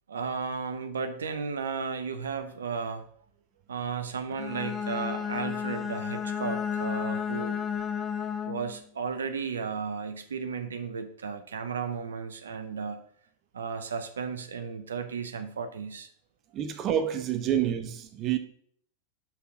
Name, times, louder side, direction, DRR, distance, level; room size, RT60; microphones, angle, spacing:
voice 1, 0.1-3.0 3.7-7.6 8.4-13.0 13.5-16.1, right 5 dB, 70° right, 0.9 m, -34 dB
Bowed string instrument, 4.3-8.8, left 7 dB, 20° left, 0.9 m, -32 dB
voice 2, 16.5-18.4, right 10 dB, 35° right, 1.0 m, -28 dB
5.8 x 5.7 x 6.1 m
figure-of-eight pair, 90°, 0 cm